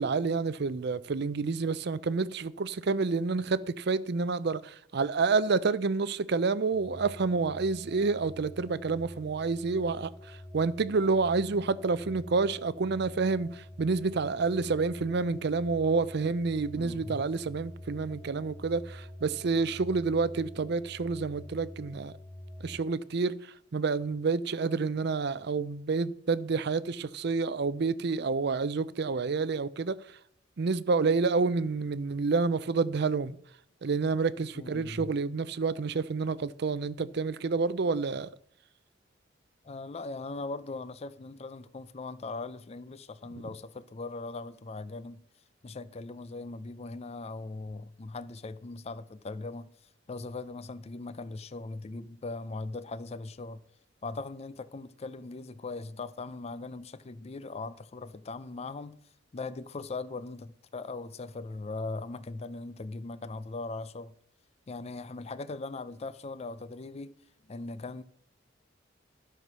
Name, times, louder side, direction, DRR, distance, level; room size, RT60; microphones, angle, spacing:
voice 1, 0.0-22.1 22.6-30.2 30.6-33.4 33.8-38.3, right 4 dB, 60° right, 0.5 m, -29 dB
sound 1, 6.7-22.8, left 1 dB, 5° right, 0.8 m, -47 dB
voice 2, 16.7-17.2 34.5-35.1 39.6-45.2 45.6-49.7 50.1-53.6 54.0-59.0 59.3-64.1 64.7-67.1 67.5-68.0, left 3 dB, 35° left, 0.4 m, -39 dB
12.5 x 5.9 x 6.1 m
head